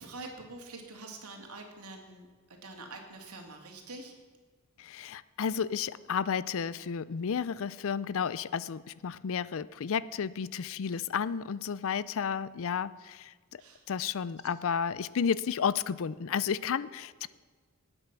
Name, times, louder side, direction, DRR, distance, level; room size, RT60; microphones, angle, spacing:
voice 1, 0.0-2.3 2.6-4.1 13.6-13.8, right 3 dB, 85° right, 3 dB, 2.6 m, -45 dB
voice 2, 4.8-13.6 13.9-17.3, left 7 dB, 65° left, 18 dB, 0.5 m, -32 dB
19.0 x 8.9 x 6.1 m, 1.5 s
head